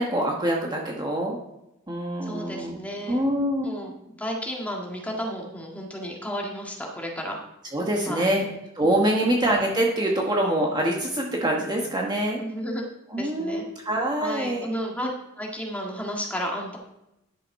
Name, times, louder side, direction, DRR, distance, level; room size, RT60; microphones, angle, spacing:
voice 1, 0.0-1.4 1.9-2.8 3.1-3.9 7.7-8.5 8.7-12.4 13.1-14.7, right 1 dB, 20° right, -1 dB, 1.2 m, -25 dB
voice 2, 2.2-3.2 3.6-7.4 8.1-8.4 9.0-9.3 12.4-12.8 13.2-13.7 14.2-15.1 15.4-16.8, equal, 5° left, -1 dB, 1.8 m, -32 dB
11.0 x 6.8 x 4.7 m, 0.87 s
head